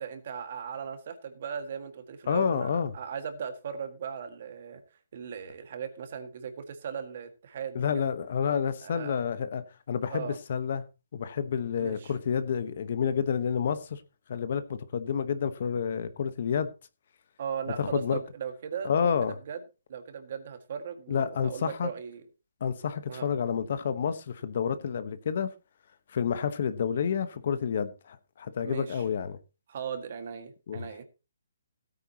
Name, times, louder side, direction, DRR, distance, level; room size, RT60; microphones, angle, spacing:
voice 1, 0.0-4.8 5.1-8.1 8.8-9.2 10.1-10.4 11.8-12.1 17.4-19.1 19.5-19.6 19.9-22.2 23.1-23.3 28.6-29.0 29.7-31.0, right 7 dB, 35° right, 1.8 m, -38 dB
voice 2, 2.3-2.9 7.7-10.8 11.1-14.0 14.3-16.7 17.8-18.2 18.8-19.3 21.1-21.9 22.6-25.5 26.1-29.4 30.7-30.9, left 7 dB, 40° left, 1.1 m, -29 dB
17.0 x 9.1 x 2.9 m
hypercardioid pair, 175°, 0 cm